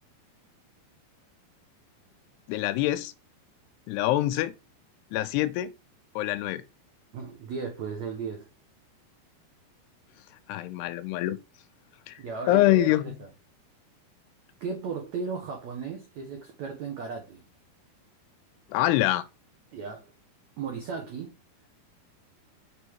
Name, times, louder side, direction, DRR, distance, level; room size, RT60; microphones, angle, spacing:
voice 1, 2.5-3.1 3.9-4.5 5.1-5.7 6.2-6.6 10.5-11.4 12.1-12.2 12.5-13.2 18.7-19.2, left 15 dB, 85° left, 2.6 m, -25 dB
voice 2, 7.1-8.5 12.2-13.1 14.6-17.4 19.7-20.0 20.6-21.3, right 5 dB, 80° right, 1.6 m, -35 dB
6.7 x 3.5 x 4.6 m
omnidirectional pair, 4.8 m